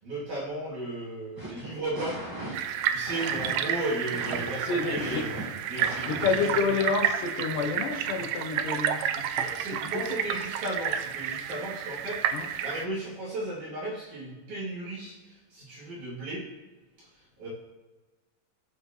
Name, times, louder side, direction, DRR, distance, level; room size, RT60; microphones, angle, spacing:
voice 1, 0.0-2.2 2.5-5.3 5.7-6.2 6.5-6.6 7.5-7.7 9.1-15.2 15.5-16.5 17.4-17.5, right 1 dB, 60° right, -8 dB, 4.3 m, -35 dB
sound 1, 1.4-6.6, right 1 dB, 20° right, 0.5 m, -38 dB
sound 2, 2.5-12.9, right 9 dB, 85° right, 1.5 m, -31 dB
voice 2, 4.6-5.3 6.1-9.5 9.9-10.2 12.3-12.5, left 4 dB, 80° left, 4 dB, 2.5 m, -29 dB
16.0 x 6.8 x 3.2 m, 1.2 s
omnidirectional pair, 3.8 m